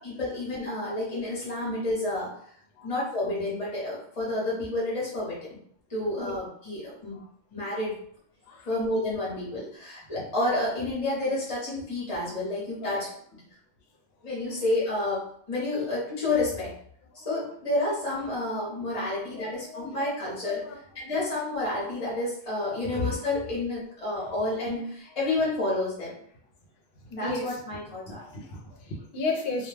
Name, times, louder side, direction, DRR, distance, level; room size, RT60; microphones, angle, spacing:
voice 1, 0.0-2.3 2.8-5.4 5.9-7.2 7.5-8.0 8.7-13.1 14.2-16.7 17.2-20.6 20.9-26.1 27.1-28.2, left 2 dB, 30° left, -7 dB, 0.8 m, -30 dB
voice 2, 12.8-13.1 15.7-15.9 19.0-19.9 20.4-20.8 22.6-22.8 24.2-24.3 27.2-27.6 28.1-29.7, left 3 dB, 60° left, 2 dB, 0.8 m, -35 dB
2.3 x 2.1 x 3.2 m, 0.65 s
omnidirectional pair, 1.3 m